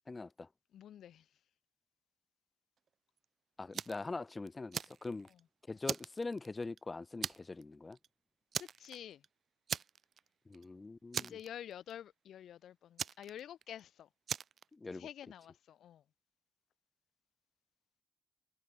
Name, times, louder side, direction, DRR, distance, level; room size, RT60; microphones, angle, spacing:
voice 1, 0.1-0.5 3.6-5.3 5.7-8.0 10.5-11.4 14.7-15.1, left 3 dB, 35° left, 6.3 m, -43 dB
voice 2, 0.7-1.3 8.6-9.2 11.2-14.1 14.9-16.0, left 10 dB, 80° left, 4.2 m, -49 dB
Fire, 3.7-4.1 4.5-5.4 5.8-6.8 7.2-7.6 7.9-8.1 8.5-9.3 9.7-10.3 10.5-10.6 11.1-11.9 13.0-13.8 14.3-14.6, right 7 dB, 65° right, 2.4 m, -40 dB
supercardioid pair, 50°, 0 cm